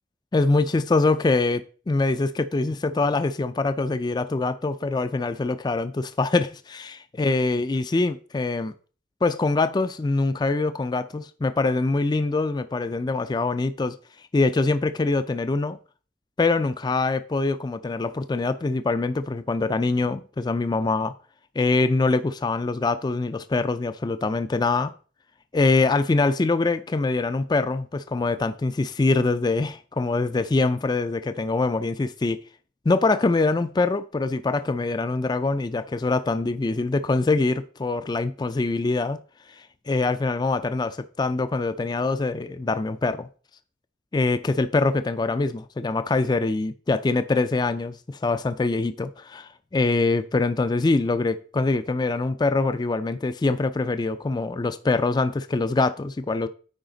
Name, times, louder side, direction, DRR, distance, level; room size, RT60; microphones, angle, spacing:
voice 1, 0.3-8.7 9.2-14.0 14.3-15.8 16.4-21.1 21.6-24.9 25.5-32.4 32.9-39.2 39.6-43.3 44.1-56.5, left 3 dB, 20° left, 0.3 m, -24 dB
8.9 x 4.9 x 3.9 m
head